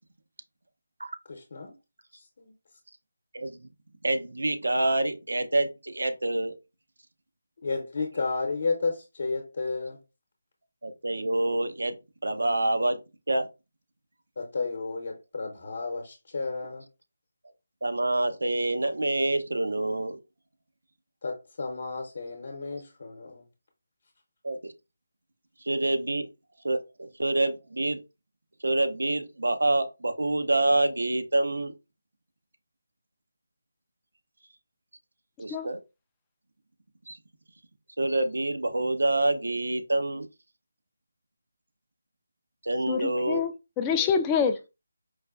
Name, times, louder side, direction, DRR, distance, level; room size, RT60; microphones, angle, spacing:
voice 1, 1.3-1.7 2.1-2.5 7.6-10.0 14.4-16.9 21.2-23.4, left 4 dB, 50° left, 0.8 m, -32 dB
voice 2, 3.3-3.7 4.0-6.5 10.8-11.9 12.2-13.0 13.3-13.5 17.8-20.2 24.4-24.6 25.6-26.2 26.6-28.0 28.6-31.7 35.4-35.8 37.1-37.2 38.0-40.3 42.6-43.4, right 2 dB, 90° right, 0.6 m, -27 dB
voice 3, 42.9-44.7, left 6 dB, 15° left, 0.3 m, -26 dB
4.7 x 2.2 x 2.3 m
figure-of-eight pair, 170°, 0 cm